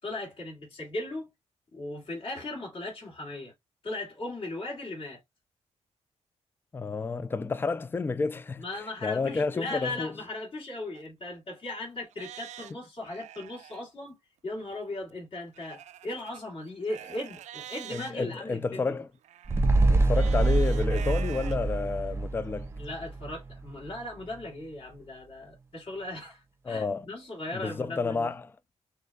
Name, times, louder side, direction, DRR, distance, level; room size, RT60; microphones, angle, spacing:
voice 1, 0.0-1.3 1.7-3.5 3.8-5.2 8.6-14.2 14.4-18.9 22.8-28.3, left 2 dB, 45° left, 2.2 m, -38 dB
voice 2, 6.7-8.6 9.0-10.1 17.9-19.1 19.9-22.7 26.7-27.1 27.5-28.5, left 4 dB, 20° left, 0.3 m, -30 dB
Livestock farm animals working animals, 10.9-11.0 11.6-11.7 12.1-13.8 15.5-18.1 19.2-21.6 22.1-22.2 22.8-22.9, right 11 dB, 80° right, 0.4 m, -45 dB
sound 1, 19.5-24.0 24.3-24.4, right 2 dB, 20° right, 0.6 m, -26 dB
6.4 x 2.4 x 2.2 m
cardioid pair, 100°, 12 cm